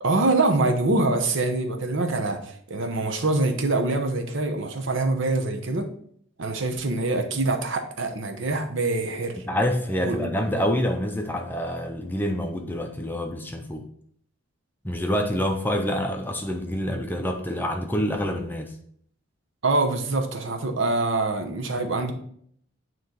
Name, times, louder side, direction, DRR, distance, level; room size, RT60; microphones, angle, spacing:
voice 1, 0.0-5.9 6.4-9.4 10.0-10.3 19.6-22.1, right 2 dB, 65° right, 5 dB, 0.8 m, -25 dB
voice 2, 9.4-13.8 14.8-18.7, equal, 10° left, 4 dB, 0.5 m, -27 dB
9.1 x 3.1 x 3.8 m, 0.64 s
head